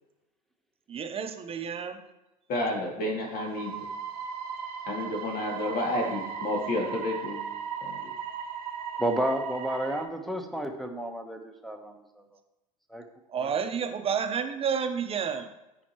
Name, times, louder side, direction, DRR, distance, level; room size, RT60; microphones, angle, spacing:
voice 1, 0.9-2.0 13.3-15.5, right 7 dB, 30° right, 7 dB, 1.0 m, -30 dB
voice 2, 2.5-3.7 4.9-7.4 7.8-8.1, left 1 dB, 50° left, -1 dB, 2.7 m, -30 dB
sound 1, 3.3-10.1, right 7 dB, 80° right, 1.0 m, -37 dB
voice 3, 9.0-11.9 12.9-13.0 13.3-13.5, equal, ahead, 5 dB, 1.2 m, -31 dB
14.0 x 5.1 x 3.1 m, 0.97 s
hypercardioid pair, 80°, 20 cm